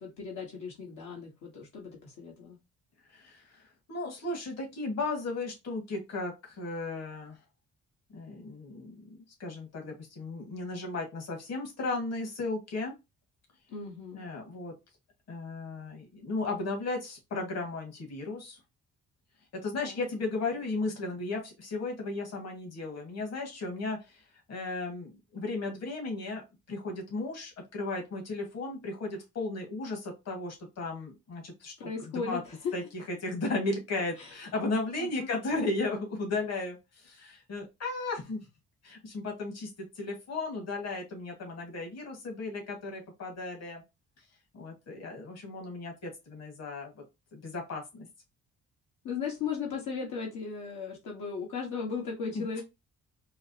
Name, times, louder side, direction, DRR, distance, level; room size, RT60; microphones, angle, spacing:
voice 1, 0.0-2.6 13.7-14.2 19.8-20.0 31.8-32.7 34.2-34.3 35.0-35.3 49.0-52.6, left 5 dB, 80° left, -2 dB, 1.3 m, -37 dB
voice 2, 3.1-3.6 3.9-7.4 8.1-12.9 14.1-14.7 15.3-18.6 19.6-32.4 32.7-38.5 38.8-43.8 44.5-47.0 47.3-48.1 52.3-52.4, left 3 dB, 60° left, 2 dB, 1.6 m, -35 dB
4.8 x 2.1 x 2.7 m, 0.23 s
cardioid pair, 90°, 30 cm